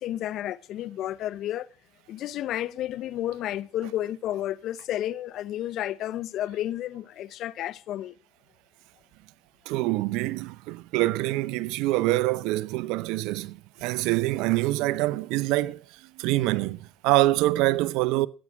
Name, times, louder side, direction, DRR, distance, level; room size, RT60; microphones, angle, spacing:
voice 1, 0.0-1.7 2.1-8.2, left 12 dB, 65° left, 0.6 m, -31 dB
voice 2, 9.7-15.9 16.2-18.3, right 18 dB, 75° right, 0.6 m, -25 dB
13.5 x 8.8 x 5.8 m
hypercardioid pair, 65°, 0 cm